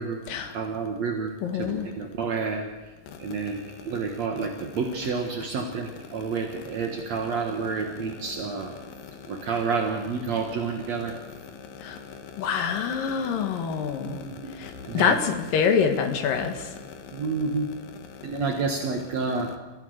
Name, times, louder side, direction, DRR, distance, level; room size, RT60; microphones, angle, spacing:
voice 1, 0.5-2.7 3.2-8.8 9.3-11.1 14.0-14.5 14.9-15.2 17.1-17.7 18.2-19.5, right 4 dB, 70° right, 2 dB, 1.6 m, -29 dB
voice 2, 1.4-1.9 3.1-3.3 11.7-16.7 17.1-17.3 18.1-18.3, left 6 dB, 60° left, 6 dB, 2.6 m, -27 dB
29.0 x 15.5 x 6.5 m, 1.2 s
omnidirectional pair, 5.6 m